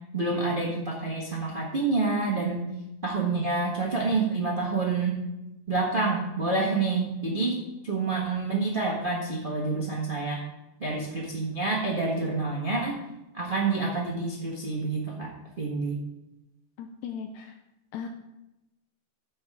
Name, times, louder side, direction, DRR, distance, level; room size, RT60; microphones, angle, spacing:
voice 1, 0.1-2.6 3.0-5.2 5.7-10.4 10.8-13.0 13.3-15.3 15.6-16.0, right 3 dB, 40° right, -4 dB, 0.7 m, -28 dB
voice 2, 16.8-17.5 17.9-18.1, left 7 dB, 80° left, 5 dB, 1.7 m, -37 dB
15.0 x 5.5 x 3.6 m, 0.94 s
omnidirectional pair, 3.8 m